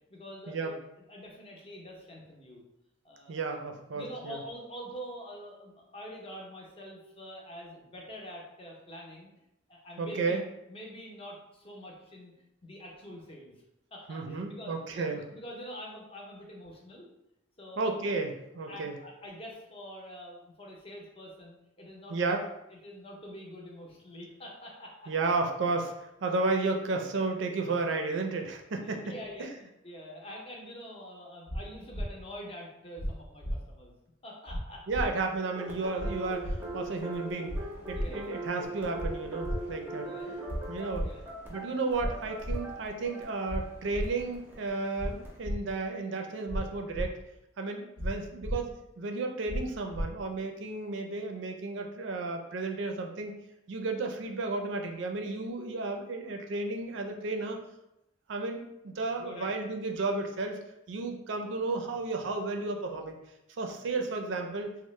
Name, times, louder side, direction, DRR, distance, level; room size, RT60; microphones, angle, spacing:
voice 1, 0.1-0.7 1.1-2.6 3.0-3.4 3.9-9.3 9.7-10.4 10.7-12.3 12.6-13.5 13.9-17.1 17.6-18.0 18.7-22.3 22.7-25.1 28.8-33.9 34.2-34.8 36.9-37.2 37.9-38.4 40.0-40.4 41.0-41.2 59.2-59.5, equal, 30° left, -1 dB, 0.6 m, -45 dB
voice 2, 3.3-4.4 10.0-10.4 14.1-15.2 17.8-19.0 22.1-22.4 25.1-29.1 34.9-37.6 37.9-40.1 40.7-41.1 41.5-47.1 47.6-53.3 53.7-57.6 58.3-60.6 60.9-63.2 63.6-64.7, right 3 dB, 65° right, 4 dB, 0.4 m, -33 dB
sound 1, 31.5-31.6 31.9-32.0 33.0-33.1 33.4-33.6 34.5-34.6 34.9-35.1 36.0-36.1 36.4-36.5 37.5-37.6 37.9-38.1 39.0-39.1 39.4-39.6 40.5-40.6 40.9-41.1 42.0-42.1 42.4-42.6 43.5-43.6 43.9-44.0 45.0-45.1 45.4-45.6 46.5-46.6 46.9-47.0 48.0-48.1 48.4-48.6 49.5-49.6 49.9-50.0, equal, 80° left, 0.7 m, -32 dB
sound 2, 35.5-45.4, right 1 dB, 10° right, 0.5 m, -41 dB
3.1 x 2.0 x 3.1 m, 0.86 s
head